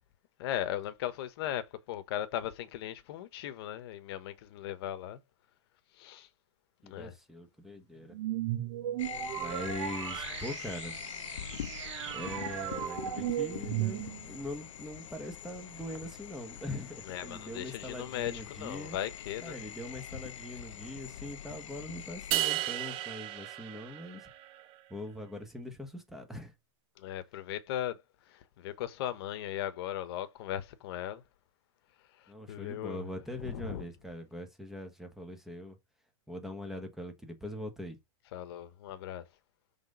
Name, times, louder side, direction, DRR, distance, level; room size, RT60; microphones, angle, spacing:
voice 1, 0.4-5.2 5.9-6.3 6.8-7.2 17.1-19.6 27.0-31.2 32.2-33.0 33.4-33.9 38.3-39.2, left 11 dB, 55° left, 1.2 m, -38 dB
voice 2, 6.8-8.1 9.3-10.9 12.1-14.0 14.3-19.0 19.4-24.3 24.9-26.5 32.3-35.8 36.3-38.0, left 1 dB, ahead, 1.2 m, -42 dB
sound 1, 8.1-14.4, right 12 dB, 65° right, 1.4 m, -36 dB
sound 2, 9.0-22.4, left 10 dB, 85° left, 0.8 m, -44 dB
sound 3, 22.3-24.6, right 14 dB, 30° right, 0.8 m, -34 dB
6.0 x 3.8 x 5.4 m
hypercardioid pair, 150°, 16 cm